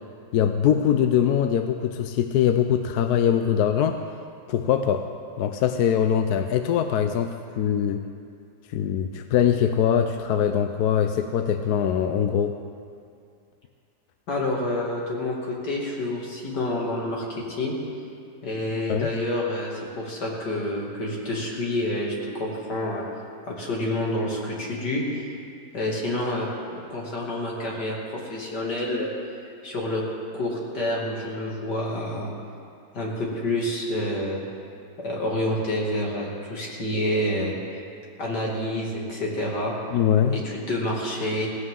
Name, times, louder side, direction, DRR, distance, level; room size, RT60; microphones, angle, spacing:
voice 1, 0.3-4.0 4.5-5.1 5.4-8.1 8.7-12.6 18.9-19.1 39.9-40.4, left 9 dB, 75° left, 7 dB, 1.1 m, -22 dB
voice 2, 14.3-17.7 18.4-22.1 22.4-23.1 23.5-25.3 25.7-29.1 29.6-30.0 30.3-32.3 32.9-34.4 35.0-37.8 38.2-39.7 40.3-41.5, left 1 dB, 90° left, -3 dB, 3.1 m, -28 dB
17.5 x 15.5 x 3.8 m, 2.4 s
omnidirectional pair, 1.8 m